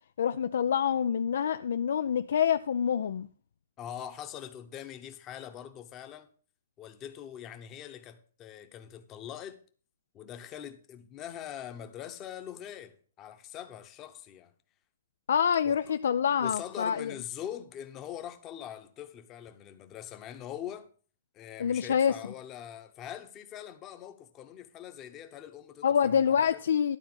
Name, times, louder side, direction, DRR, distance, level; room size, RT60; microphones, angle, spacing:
voice 1, 0.2-3.3 15.3-17.1 21.6-22.2 25.8-27.0, left 8 dB, 75° left, 0.4 m, -26 dB
voice 2, 3.8-6.3 6.8-9.6 10.1-14.5 15.6-15.8 16.3-20.9 21.3-26.6, left 10 dB, 20° left, 0.9 m, -43 dB
12.0 x 4.2 x 7.9 m
hypercardioid pair, 165°, 0 cm